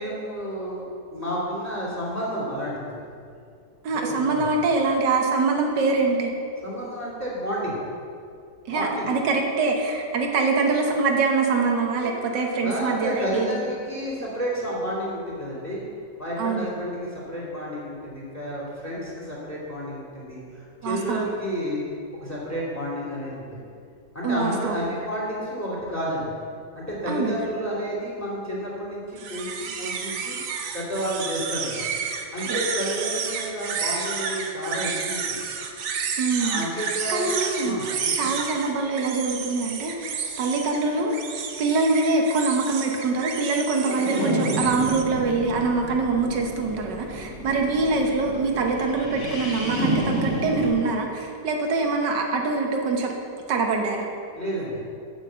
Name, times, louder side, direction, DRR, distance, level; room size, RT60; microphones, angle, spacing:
voice 1, 0.0-3.0 3.9-4.5 6.6-7.8 8.7-9.1 12.0-15.8 16.2-21.8 22.1-23.4 24.1-26.3 26.7-30.4 30.7-31.9 32.3-35.4 36.4-37.3 37.6-38.1 54.3-54.8, equal, 10° left, -6 dB, 2.7 m, -31 dB
voice 2, 3.8-6.3 8.7-13.6 16.4-16.8 20.8-21.3 24.2-24.8 27.1-27.4 32.5-32.6 36.2-37.8 38.1-53.1 53.5-54.1, right 3 dB, 90° right, 1 dB, 1.7 m, -24 dB
sound 1, 29.2-45.0, right 6 dB, 60° right, 1.0 m, -31 dB
sound 2, 43.8-50.7, equal, 45° left, 2.3 m, -30 dB
8.1 x 6.1 x 7.6 m, 2.4 s
omnidirectional pair, 1.8 m